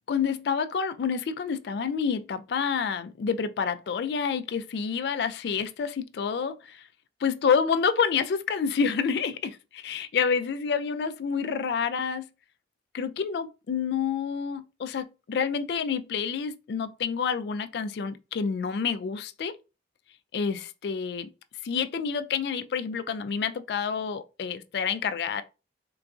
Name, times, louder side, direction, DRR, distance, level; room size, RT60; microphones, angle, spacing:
voice 1, 0.1-6.8 7.2-12.3 12.9-19.5 20.3-21.3 21.6-25.4, left 6 dB, 65° left, 0.3 m, -28 dB
3.8 x 2.4 x 2.3 m
head